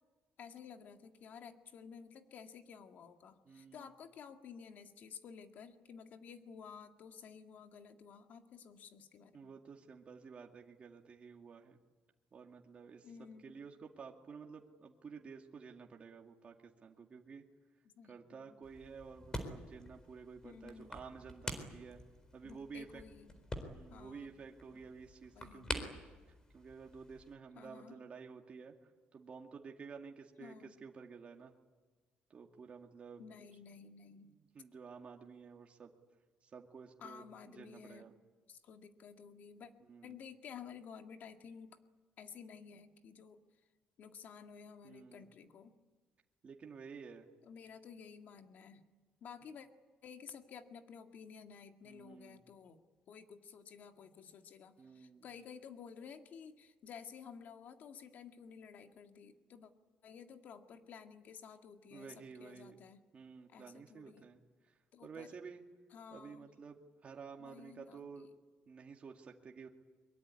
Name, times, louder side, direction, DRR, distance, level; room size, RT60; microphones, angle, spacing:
voice 1, 0.4-9.5 13.0-13.5 18.0-18.6 20.4-21.0 22.4-23.3 23.9-24.3 24.7-24.8 25.3-26.0 27.5-28.0 30.4-30.8 33.2-34.4 37.0-38.1 38.5-39.7 40.0-41.8 42.2-43.4 44.0-45.7 47.4-48.8 49.2-49.7 50.0-52.8 53.1-59.7 60.0-63.0 63.5-64.2 64.9-65.3 65.9-66.4 67.4-68.3, left 6 dB, 55° left, 6 dB, 2.0 m, -53 dB
voice 2, 3.4-3.9 9.3-11.8 12.3-13.1 13.4-17.5 18.1-22.0 22.3-23.0 23.6-31.5 32.3-33.2 34.5-35.9 36.4-38.1 39.9-40.2 44.8-45.3 46.4-47.3 51.8-52.5 54.8-55.3 61.9-62.8 63.1-65.6 66.1-68.3 68.7-69.7, right 5 dB, 35° right, 2 dB, 2.2 m, -52 dB
sound 1, 18.6-27.3, left 1 dB, 20° left, 4.1 m, -47 dB
23.0 x 23.0 x 9.8 m, 1.3 s
cardioid pair, 125°, 3 cm